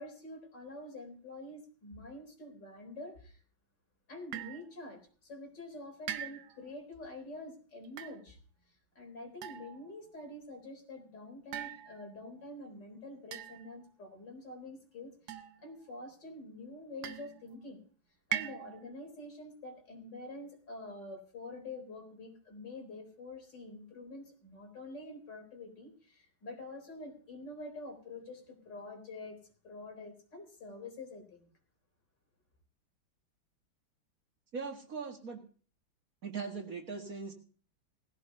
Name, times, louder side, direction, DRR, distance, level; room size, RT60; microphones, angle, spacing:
voice 1, 0.0-3.4 4.1-8.4 8.7-17.8 18.3-31.5, left 2 dB, 65° left, 3 dB, 4.6 m, -47 dB
Hitting water-filled metal lid (cooking top), 4.3-4.7 6.1-6.7 7.8-8.2 9.4-10.0 11.5-12.3 13.3-13.9 15.3-15.9 17.0-17.5 18.3-18.9, right 10 dB, 65° right, 1.3 m, -41 dB
voice 2, 34.5-35.4 36.2-37.3, right 5 dB, 45° right, 3 dB, 2.3 m, -40 dB
19.5 x 15.5 x 2.8 m, 0.41 s
omnidirectional pair, 2.0 m